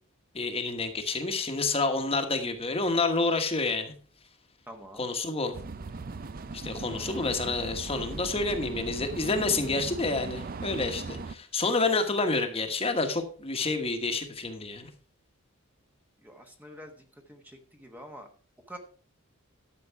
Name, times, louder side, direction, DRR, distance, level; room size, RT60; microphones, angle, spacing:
voice 1, 0.3-3.9 5.0-5.6 6.5-14.9, left 3 dB, 25° left, 6 dB, 1.3 m, -29 dB
voice 2, 4.7-5.1 6.8-7.4 16.2-18.3 18.7-18.8, equal, 10° right, 3 dB, 1.1 m, -47 dB
sound 1, 5.5-11.3, right 3 dB, 40° right, 0.5 m, -39 dB
12.0 x 6.8 x 4.6 m, 0.40 s
head